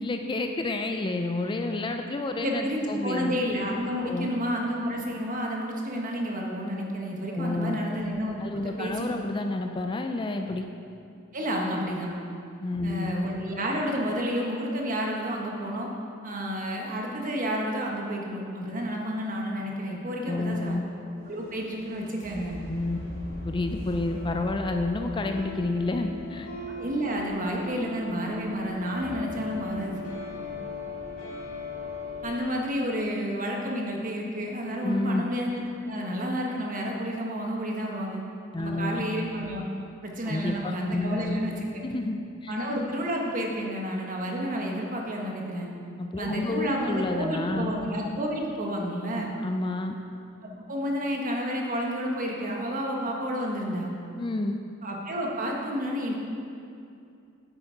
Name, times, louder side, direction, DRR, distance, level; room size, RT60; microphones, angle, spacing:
voice 1, 0.0-3.4 4.0-4.3 7.3-7.8 8.4-10.7 12.6-13.1 20.3-20.8 22.7-23.0 23.4-26.5 34.8-35.3 38.5-39.0 40.2-41.4 41.8-42.5 46.0-47.8 49.4-50.0 54.2-54.6, left 2 dB, 25° left, 5 dB, 0.4 m, -30 dB
voice 2, 2.4-9.1 11.3-12.1 12.8-15.9 16.2-20.8 21.2-22.6 26.7-30.0 32.2-38.2 38.6-39.6 40.0-41.5 42.5-45.7 46.2-49.3 50.4-53.9 54.8-56.1, equal, 40° right, 0 dB, 1.3 m, -30 dB
sound 1, 19.5-32.4, left 2 dB, 65° left, 2.2 m, -39 dB
9.4 x 8.0 x 4.6 m, 2.5 s
head